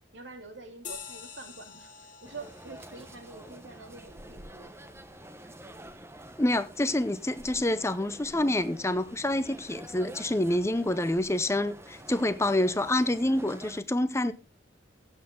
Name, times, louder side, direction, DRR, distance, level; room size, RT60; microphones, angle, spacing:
voice 1, 0.1-4.7, right 3 dB, 75° right, 2.5 m, -46 dB
sound 1, 0.8-5.7, left 7 dB, 45° left, 2.6 m, -48 dB
sound 2, 2.2-13.8, right 1 dB, 15° right, 1.0 m, -48 dB
voice 2, 6.4-14.3, left 1 dB, 15° left, 0.7 m, -27 dB
16.0 x 8.5 x 3.8 m
head